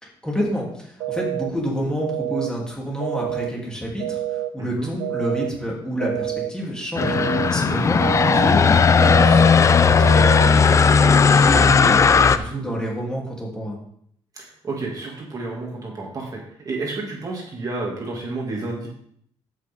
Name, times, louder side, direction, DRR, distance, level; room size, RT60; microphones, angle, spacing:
voice 1, 0.0-13.8, equal, 5° left, -4 dB, 3.3 m, -29 dB
sound 1, 1.0-1.5 2.0-2.5 3.0-3.5 4.0-4.5 5.0-5.5 6.0-6.5 7.0-7.5 8.0-8.5 9.0-9.5 10.0-10.5, right 13 dB, 90° right, 0.7 m, -27 dB
voice 2, 4.6-4.9 7.6-7.8 12.3-12.7 14.3-16.4 16.6-18.9, right 3 dB, 35° right, -2 dB, 2.5 m, -31 dB
sound 2, 7.0-12.4, left 5 dB, 30° left, 0.5 m, -15 dB
14.0 x 6.3 x 3.8 m, 0.67 s
cardioid pair, 120°, 10 cm